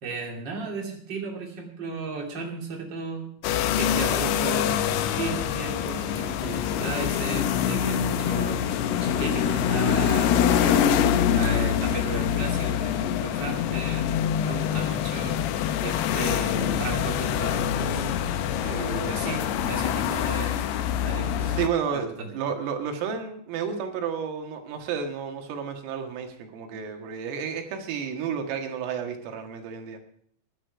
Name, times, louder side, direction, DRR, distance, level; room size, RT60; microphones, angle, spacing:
voice 1, 0.0-3.3 3.7-14.1 14.4-15.4 15.8-18.1 18.7-20.7 21.0-21.6 21.9-22.3, right 3 dB, 30° right, 1 dB, 2.2 m, -35 dB
sound 1, 3.4-21.7, left 9 dB, 80° left, 2.3 m, -25 dB
voice 2, 18.6-19.0 21.6-30.0, right 7 dB, 90° right, 4 dB, 4.4 m, -31 dB
16.0 x 11.5 x 4.7 m, 0.64 s
omnidirectional pair, 5.7 m